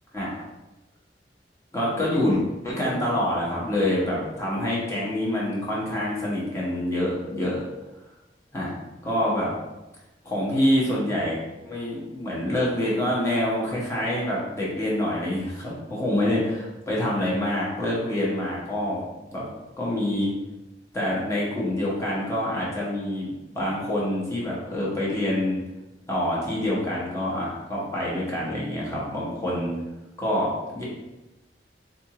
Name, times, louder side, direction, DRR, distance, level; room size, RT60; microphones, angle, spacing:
voice 1, 0.1-0.4 1.7-7.7 8.5-8.7 9.0-9.5 10.2-11.4 11.6-19.0 19.3-19.4 19.8-20.3 20.9-25.6 26.1-29.7 30.2-30.8, left 1 dB, 15° left, -6 dB, 0.9 m, -26 dB
3.6 x 2.6 x 2.9 m, 1.0 s
head